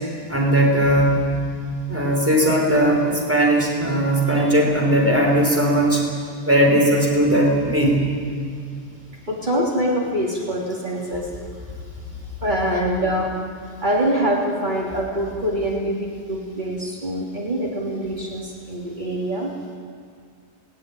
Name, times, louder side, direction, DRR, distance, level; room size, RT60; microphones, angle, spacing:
voice 1, 0.3-1.1 1.9-6.0 6.4-8.0, right 1 dB, 10° right, -2 dB, 5.0 m, -18 dB
voice 2, 9.3-11.3 12.4-13.3 13.8-19.5, equal, 40° right, -3 dB, 3.1 m, -24 dB
19.5 x 19.0 x 9.8 m, 2.3 s
omnidirectional pair, 1.3 m